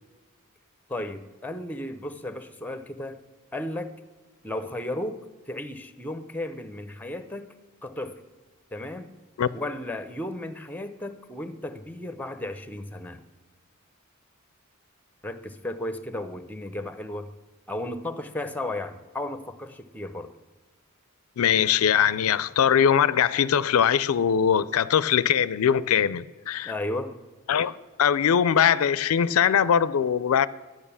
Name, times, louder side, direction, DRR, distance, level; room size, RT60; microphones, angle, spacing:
voice 1, 0.9-3.2 3.5-3.9 4.4-7.5 7.8-8.2 8.7-9.1 9.5-13.2 15.2-17.3 17.7-20.3 26.6-27.2, left 1 dB, 10° left, 0.6 m, -34 dB
voice 2, 21.4-26.7 27.5-30.5, left 8 dB, 90° left, 0.4 m, -21 dB
10.5 x 8.8 x 7.0 m
head